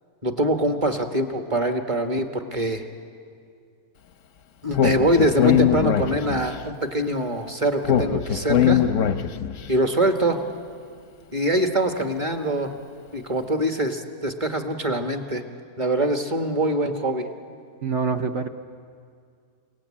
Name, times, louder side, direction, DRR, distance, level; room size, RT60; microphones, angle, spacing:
voice 1, 0.2-2.8 4.6-8.8 9.7-10.4 11.3-12.8 13.1-15.4 15.8-17.3, right 1 dB, 20° right, 5 dB, 1.3 m, -23 dB
Speech, 4.7-6.6 7.8-9.6, left 9 dB, 55° left, 1.0 m, -21 dB
voice 2, 17.8-18.5, right 5 dB, 55° right, 6 dB, 0.9 m, -25 dB
30.0 x 18.5 x 8.7 m, 2.2 s
omnidirectional pair, 1.9 m